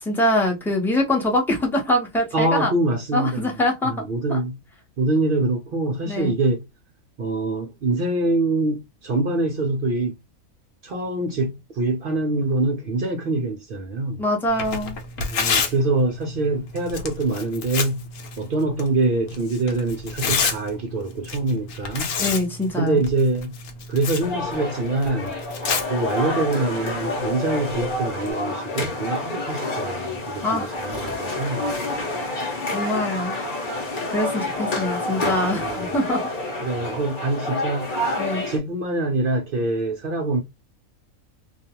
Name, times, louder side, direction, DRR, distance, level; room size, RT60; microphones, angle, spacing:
voice 1, 0.0-2.7 3.1-4.4 6.0-6.4 14.2-15.0 22.2-23.0 30.4-30.7 32.7-33.4 34.1-36.2 38.2-38.5, left 1 dB, ahead, 0.6 m, -24 dB
voice 2, 2.3-3.5 3.8-4.6 5.0-6.7 7.2-10.1 10.8-14.2 15.2-18.1 18.4-22.1 22.8-23.6 23.9-25.4 25.9-31.7 35.6-35.9 36.6-38.1 38.5-40.4, right 2 dB, 65° right, 0.5 m, -24 dB
Tearing, 14.5-28.3, left 5 dB, 65° left, 1.0 m, -31 dB
sound 1, 24.2-38.6, left 2 dB, 45° left, 0.8 m, -28 dB
2.4 x 2.4 x 2.8 m
omnidirectional pair, 1.5 m